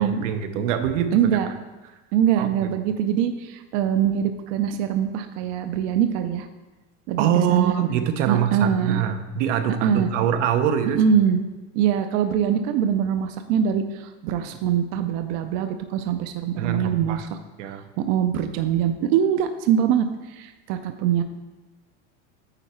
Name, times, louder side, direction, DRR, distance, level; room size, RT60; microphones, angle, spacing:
voice 1, 0.0-1.2 2.4-2.7 7.2-11.0 16.6-17.2 17.6-17.8, right 9 dB, 85° right, 8 dB, 0.8 m, -24 dB
voice 2, 1.1-1.5 2.1-6.5 7.1-7.7 8.3-9.0 9.8-10.1 10.9-11.4 11.7-17.3 18.0-21.2, right 8 dB, 55° right, 8 dB, 0.5 m, -23 dB
9.0 x 4.5 x 4.2 m, 1.1 s
supercardioid pair, 150°, 35 cm